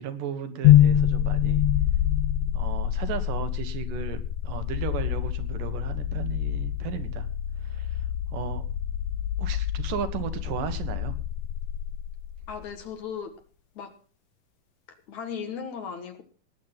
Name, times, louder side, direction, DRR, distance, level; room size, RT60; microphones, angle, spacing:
voice 1, 0.0-1.6 2.5-7.3 7.6-8.0 8.3-8.6 9.4-11.1, right 7 dB, 70° right, 10 dB, 3.0 m, -35 dB
sound 1, 0.6-12.7, left 11 dB, 85° left, 1.5 m, -26 dB
voice 2, 12.5-13.3 13.8-13.9 15.1-16.2, left 7 dB, 60° left, 7 dB, 2.5 m, -36 dB
19.0 x 8.5 x 5.8 m, 0.40 s
omnidirectional pair, 4.1 m